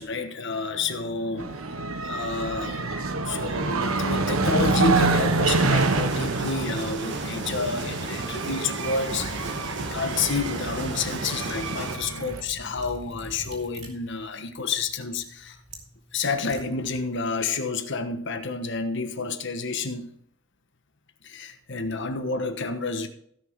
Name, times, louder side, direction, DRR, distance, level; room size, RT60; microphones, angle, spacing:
voice 1, 0.0-15.6 16.1-20.1 21.2-23.1, left 4 dB, 60° left, 7 dB, 1.2 m, -30 dB
sound 1, 1.4-12.4, right 3 dB, 85° right, 1.1 m, -27 dB
sound 2, 5.5-12.0, right 2 dB, 60° right, 1.5 m, -34 dB
Liquid, 9.0-17.3, right 1 dB, 35° right, 3.4 m, -44 dB
16.0 x 6.2 x 4.7 m, 0.67 s
head